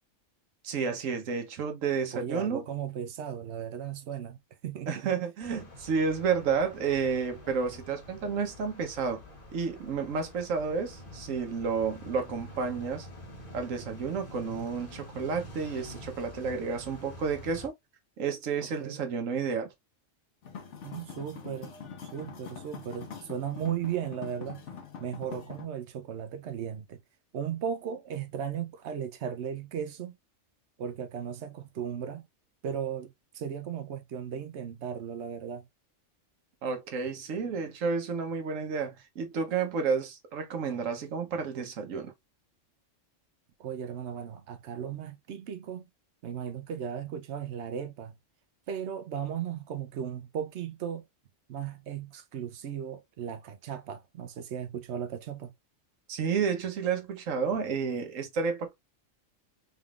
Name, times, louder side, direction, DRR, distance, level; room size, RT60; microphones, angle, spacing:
voice 1, 0.6-2.6 4.9-9.2 9.5-13.1 13.5-17.7 18.2-19.7 36.6-42.1 56.1-58.7, right 5 dB, 85° right, 1.3 m, -31 dB
voice 2, 2.1-5.1 18.6-19.1 20.8-21.7 22.0-24.6 25.0-27.0 27.3-30.2 30.8-32.2 32.6-35.7 43.6-45.9 46.2-48.2 48.7-51.1 51.5-55.5, right 8 dB, 65° right, 0.9 m, -36 dB
sound 1, 5.4-17.7, left 1 dB, 45° left, 1.3 m, -47 dB
sound 2, 20.4-25.7, left 6 dB, 70° left, 1.2 m, -44 dB
3.9 x 3.5 x 2.3 m
omnidirectional pair, 1.3 m